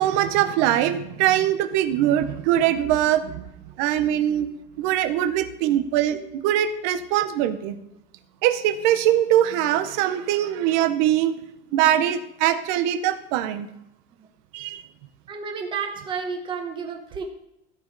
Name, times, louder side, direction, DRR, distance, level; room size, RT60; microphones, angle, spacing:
voice 1, 0.0-3.4 3.8-4.5 4.8-6.2 6.4-7.7 8.4-11.4 11.7-13.7 14.5-14.8, right 12 dB, 50° right, 9 dB, 0.7 m, -22 dB
voice 2, 15.3-17.2, right 5 dB, 15° right, 3 dB, 1.0 m, -31 dB
15.0 x 5.2 x 3.9 m, 0.81 s
cardioid pair, 180°, 29 cm